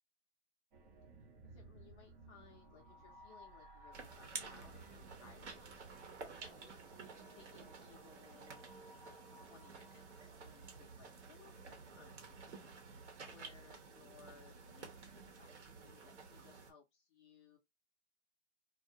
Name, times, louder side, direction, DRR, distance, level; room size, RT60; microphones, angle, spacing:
sound 1, 0.7-11.1, right 2 dB, 40° right, 0.8 m, -60 dB
voice 1, 1.4-8.7 9.1-12.7 13.3-17.6, left 6 dB, 20° left, 0.5 m, -64 dB
sound 2, 3.9-16.7, right 4 dB, 75° right, 1.1 m, -52 dB
2.4 x 2.1 x 2.7 m
hypercardioid pair, 145°, 35 cm